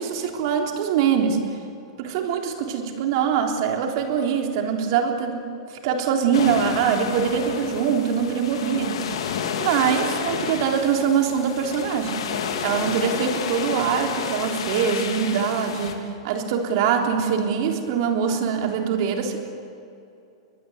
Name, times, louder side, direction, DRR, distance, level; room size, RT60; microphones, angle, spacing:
voice 1, 0.0-1.4 2.0-5.4 5.7-12.2 12.6-19.4, right 7 dB, 55° right, 3 dB, 3.7 m, -23 dB
sound 1, 6.3-15.9, left 7 dB, 75° left, 3.1 m, -30 dB
22.5 x 22.0 x 8.2 m, 2.6 s
hypercardioid pair, 135°, 3 cm